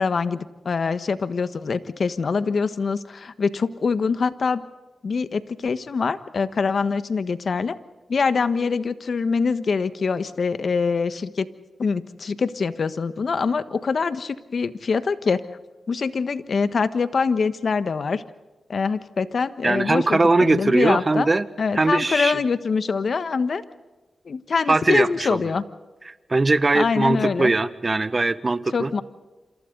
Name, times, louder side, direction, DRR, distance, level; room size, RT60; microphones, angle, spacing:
voice 1, 0.0-4.6 5.0-7.7 8.1-11.5 11.8-15.4 15.9-18.2 18.7-21.3 21.6-23.6 24.2-25.6 26.7-27.5 28.7-29.0, left 5 dB, 65° left, 12 dB, 1.4 m, -24 dB
voice 2, 19.6-21.5 21.7-22.4 24.7-25.4 26.1-28.9, right 3 dB, 40° right, 13 dB, 1.5 m, -20 dB
28.0 x 27.5 x 4.0 m, 1.2 s
supercardioid pair, 40°, 0 cm